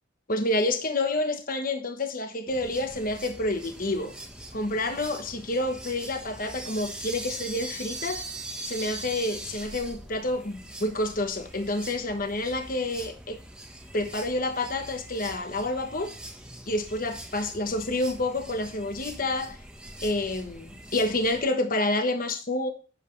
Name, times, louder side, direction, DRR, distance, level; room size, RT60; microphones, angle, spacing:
voice 1, 0.3-4.1 4.5-8.3 8.6-13.4 13.9-16.1 16.7-19.6 20.0-22.7, left 2 dB, 45° left, 1.2 m, -28 dB
sound 1, 2.5-21.4, right 1 dB, 5° right, 1.1 m, -42 dB
11.0 x 7.5 x 3.3 m
head